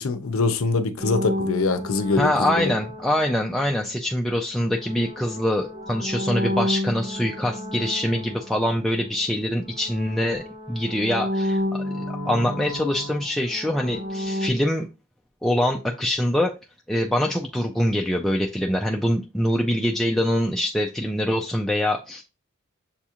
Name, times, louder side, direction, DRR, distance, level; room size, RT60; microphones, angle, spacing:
voice 1, 0.0-2.7, left 3 dB, 65° left, 0.6 m, -24 dB
sound 1, 1.0-3.9 4.6-9.4 9.6-14.5, left 1 dB, 60° right, 1.8 m, -31 dB
voice 2, 2.2-14.9 15.4-16.5 16.9-22.2, left 1 dB, ahead, 0.3 m, -24 dB
7.0 x 2.4 x 2.8 m
head